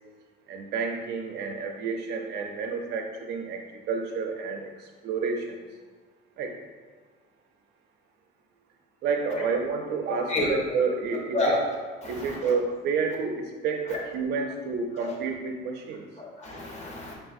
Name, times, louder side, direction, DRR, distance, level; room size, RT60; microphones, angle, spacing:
voice 1, 0.5-5.6 6.4-6.5 9.0-11.6 12.0-16.0, right 5 dB, 60° right, 3 dB, 0.5 m, -30 dB
voice 2, 11.3-12.4 15.0-15.1 16.2-17.1, left 1 dB, 35° left, -2 dB, 0.9 m, -29 dB
4.5 x 3.3 x 2.5 m, 1.5 s
cardioid pair, 155°, 19 cm